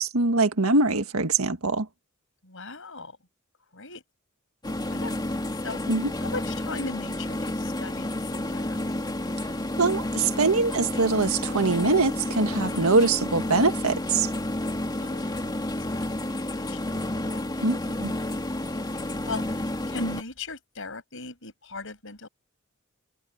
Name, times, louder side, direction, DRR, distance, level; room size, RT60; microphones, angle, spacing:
voice 1, 0.0-1.9 5.9-6.1 9.8-14.3 17.6-18.1, right 3 dB, 85° right, 1.7 m, -23 dB
voice 2, 2.4-3.2 3.7-4.0 4.9-5.8 6.2-8.8 12.7-13.2 15.0-16.2 16.7-17.5 18.2-22.3, left 3 dB, 65° left, 7.9 m, -39 dB
sound 1, 4.6-20.2, left 1 dB, 20° left, 2.7 m, -30 dB
head